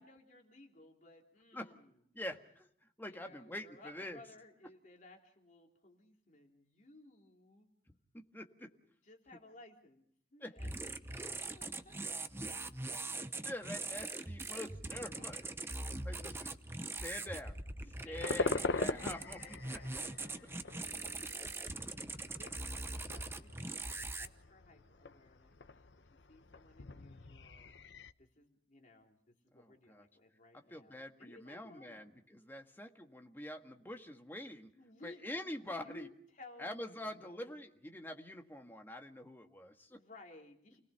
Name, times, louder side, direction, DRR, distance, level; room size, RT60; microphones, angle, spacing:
voice 1, 0.0-2.0 3.0-7.7 9.0-13.5 15.1-16.3 18.1-20.2 20.5-25.8 26.1-27.7 28.2-32.2 34.8-35.2 35.7-37.7 39.9-40.8, left 2 dB, 45° left, 1 dB, 3.5 m, -59 dB
voice 2, 2.1-2.7 3.0-4.2 8.1-8.7 10.4-10.5 13.4-15.4 16.0-16.3 17.0-17.5 18.0-19.4 19.7-19.8 29.5-30.0 30.7-34.7 35.0-36.1 36.6-40.0, left 1 dB, 10° left, 4 dB, 1.7 m, -45 dB
sound 1, 10.6-24.3, right 2 dB, 15° right, 0.9 m, -42 dB
sound 2, 18.2-28.1, left 3 dB, 90° left, 0.9 m, -42 dB
29.5 x 19.0 x 5.7 m, 0.66 s
head